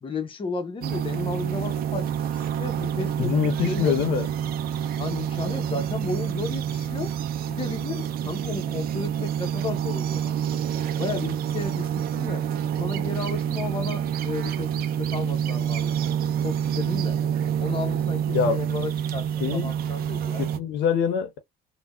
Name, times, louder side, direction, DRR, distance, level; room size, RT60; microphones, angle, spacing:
voice 1, 0.0-3.9 5.0-7.1 7.5-10.3 11.0-12.5 12.8-16.1 16.4-17.2 17.6-19.3 19.5-20.4, left 4 dB, 30° left, 0.9 m, -33 dB
sound 1, 0.8-20.6, right 9 dB, 60° right, 0.5 m, -27 dB
voice 2, 3.2-4.3 18.3-18.6 19.4-19.7 20.4-21.4, left 8 dB, 85° left, 0.8 m, -24 dB
3.4 x 2.3 x 2.3 m
cardioid pair, 110°, 17 cm